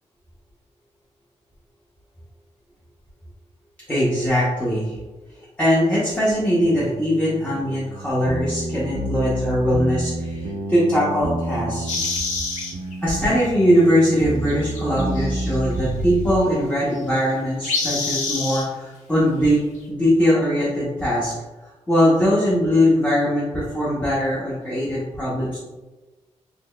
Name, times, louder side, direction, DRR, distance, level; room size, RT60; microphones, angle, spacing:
voice 1, 3.9-5.0 5.6-11.9 13.0-19.6 19.9-21.3 21.9-25.6, equal, 15° left, -8 dB, 0.7 m, -21 dB
sound 1, 6.6-16.4, right 1 dB, 70° right, 0.5 m, -29 dB
sound 2, 11.9-12.9 14.5-15.9 17.6-18.6, left 3 dB, 80° left, 0.8 m, -27 dB
3.9 x 3.0 x 2.2 m, 1.2 s
wide cardioid pair, 125°, 12 cm